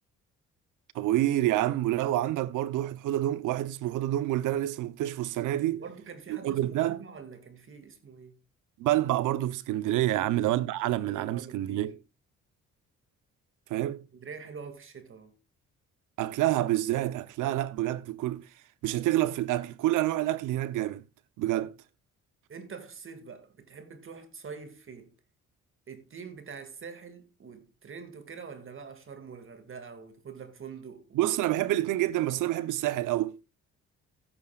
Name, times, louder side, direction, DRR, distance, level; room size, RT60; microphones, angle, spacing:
voice 1, 0.9-5.8 6.3-7.0 8.8-11.9 13.7-14.0 16.2-18.5 18.8-21.0 21.4-21.7 31.1-33.4, right 14 dB, 90° right, 0.9 m, -28 dB
voice 2, 5.7-8.4 10.1-11.9 13.8-15.4 22.5-25.1 25.9-31.2, right 5 dB, 45° right, 2.4 m, -45 dB
15.5 x 9.1 x 2.4 m
cardioid pair, 90°, 30 cm